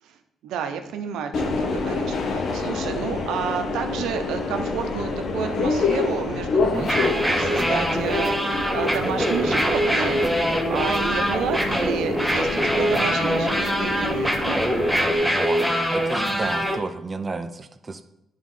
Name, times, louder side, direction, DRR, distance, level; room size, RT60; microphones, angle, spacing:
voice 1, 0.0-14.6, right 7 dB, 85° right, 6 dB, 0.7 m, -31 dB
Subway metro underground, 1.3-15.2, left 3 dB, 60° left, 0.9 m, -28 dB
voice 2, 6.6-6.9 15.3-15.6 15.9-18.0, right 3 dB, 30° right, 8 dB, 0.5 m, -31 dB
sound 1, 6.8-16.8, equal, ahead, 0.9 m, -23 dB
10.5 x 3.7 x 3.8 m, 0.83 s
cardioid pair, 90°, 0 cm